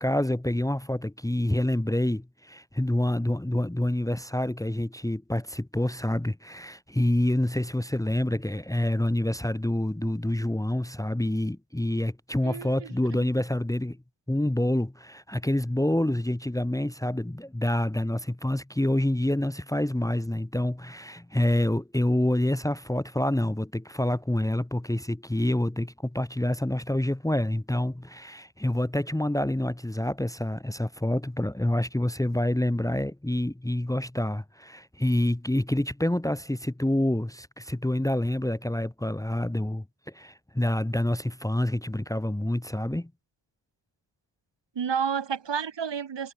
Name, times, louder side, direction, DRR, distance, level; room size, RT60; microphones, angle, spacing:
voice 1, 0.0-14.0 14.3-43.1, left 1 dB, 5° left, 1.2 m, -27 dB
voice 2, 12.4-12.9 44.8-46.3, right 7 dB, 65° right, 2.2 m, -30 dB
wide cardioid pair, 155°, 45 cm